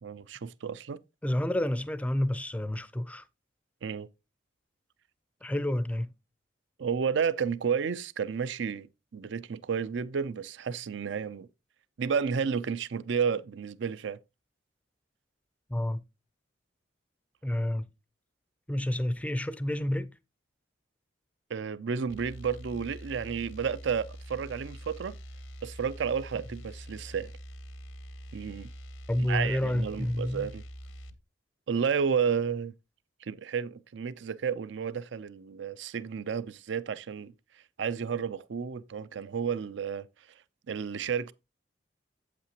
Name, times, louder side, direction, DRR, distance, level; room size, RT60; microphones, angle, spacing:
voice 1, 0.0-1.0 3.8-4.1 6.8-8.9 9.1-11.5 12.0-14.2 21.5-25.2 25.6-27.3 28.3-28.7 29.3-30.6 31.7-32.7 33.2-37.3 37.8-40.1 40.7-41.3, right 6 dB, 70° right, 0.4 m, -31 dB
voice 2, 1.2-3.2 5.4-6.1 15.7-16.0 17.4-17.9 18.7-20.1 29.1-30.5, left 1 dB, 5° left, 0.4 m, -29 dB
sound 1, 22.1-31.2, equal, 80° left, 0.8 m, -45 dB
8.4 x 8.3 x 2.9 m
head